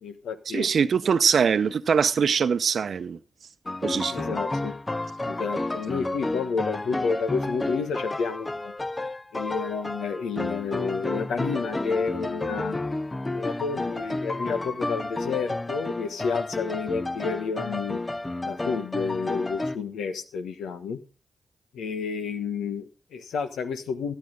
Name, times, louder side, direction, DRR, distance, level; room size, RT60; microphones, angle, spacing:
voice 1, 0.0-0.7 4.1-4.8 5.2-8.7 9.3-12.8 13.3-18.0 18.4-21.0 21.7-24.1, left 5 dB, 85° left, 1.2 m, -30 dB
voice 2, 0.5-3.2 3.8-4.4, right 6 dB, 70° right, 0.8 m, -23 dB
sound 1, 3.7-19.8, left 2 dB, 30° left, 0.7 m, -31 dB
12.5 x 12.0 x 3.8 m
supercardioid pair, 40°, 0 cm